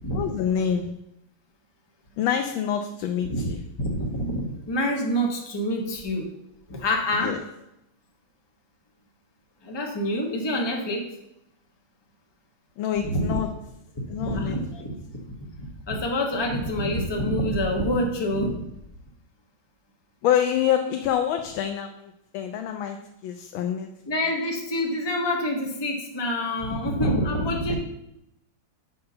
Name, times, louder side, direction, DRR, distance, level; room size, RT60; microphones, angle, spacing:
voice 1, 0.1-0.9 2.2-3.6 7.2-7.4 12.8-13.5 14.1-14.9 20.2-23.0 23.2-23.9 27.7-27.8, left 9 dB, 90° left, 5 dB, 1.4 m, -26 dB
voice 2, 3.8-6.3 6.7-7.4 9.6-11.1 13.0-13.4 14.2-15.0 15.2-15.3 15.9-18.7 24.1-27.8, equal, 20° left, 2 dB, 0.8 m, -26 dB
5.7 x 5.4 x 6.7 m, 0.83 s
omnidirectional pair, 2.1 m